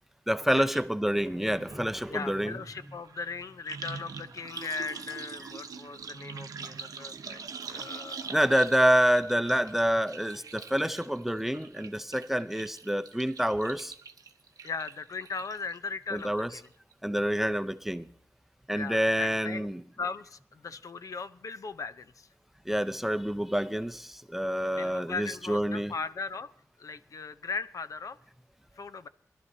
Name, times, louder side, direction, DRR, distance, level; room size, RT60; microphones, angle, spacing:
voice 1, 0.3-2.5 8.3-13.9 16.1-16.5 17.0-18.1 18.7-19.8 22.7-25.9, equal, 5° right, 0.6 m, -27 dB
sound 1, 0.7-0.9 1.1-15.8 16.2-16.7 16.9-17.0, right 5 dB, 85° right, 0.9 m, -44 dB
voice 2, 2.1-8.3 14.6-16.6 18.7-19.7 20.0-22.3 24.7-26.5 26.8-28.2 28.8-29.1, left 4 dB, 65° left, 0.7 m, -38 dB
23.0 x 12.0 x 2.8 m
wide cardioid pair, 90°, 6 cm